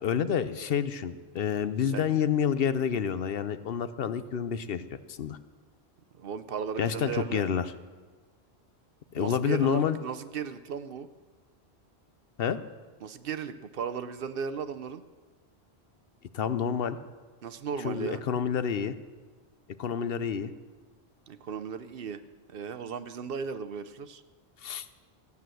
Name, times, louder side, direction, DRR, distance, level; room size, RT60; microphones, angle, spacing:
voice 1, 0.0-5.4 6.8-7.6 9.1-10.0 12.4-12.6 16.3-17.0 17.8-18.9 19.8-20.5 24.6-24.8, left 8 dB, 65° left, 12 dB, 0.9 m, -28 dB
voice 2, 6.1-7.5 9.2-11.1 13.0-15.0 17.4-18.2 21.3-22.2 22.5-24.2, right 6 dB, 65° right, 12 dB, 0.8 m, -36 dB
15.5 x 8.3 x 7.7 m, 1.5 s
omnidirectional pair, 1.1 m